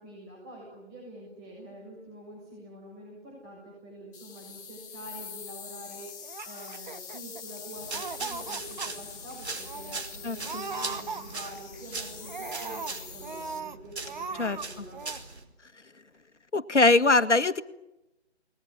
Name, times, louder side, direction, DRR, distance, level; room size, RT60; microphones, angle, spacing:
voice 1, 0.0-15.0, right 1 dB, 15° right, -3 dB, 7.2 m, -46 dB
sound 1, 4.1-13.6, left 7 dB, 15° left, 1.6 m, -44 dB
Laughter, 6.2-7.6 7.9-8.9 9.3-9.4 9.6-10.0 10.4-11.8 12.2-13.8 14.0-14.7 14.9-15.2, right 5 dB, 40° right, 1.2 m, -39 dB
sound 2, 7.8-15.4, right 3 dB, 65° right, 4.8 m, -40 dB
voice 2, 16.5-17.6, left 3 dB, 80° left, 11 dB, 1.8 m, -21 dB
29.0 x 21.0 x 9.7 m, 0.96 s
figure-of-eight pair, 155°, 35 cm